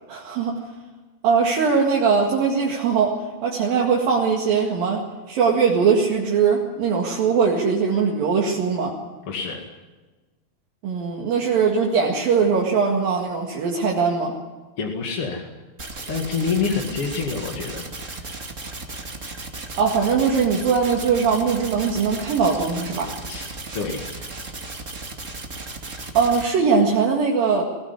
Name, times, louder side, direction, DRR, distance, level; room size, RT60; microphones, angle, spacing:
voice 1, 0.1-0.6 1.2-8.9 10.8-14.3 19.8-23.1 26.2-27.6, right 5 dB, 65° right, -2 dB, 3.6 m, -21 dB
voice 2, 9.3-9.6 14.8-15.5 16.1-18.4 23.3-24.3, left 5 dB, 40° left, 1 dB, 2.4 m, -28 dB
sound 1, 15.8-26.4, right 3 dB, 25° right, 1.7 m, -35 dB
22.0 x 16.5 x 9.7 m, 1.2 s
omnidirectional pair, 4.5 m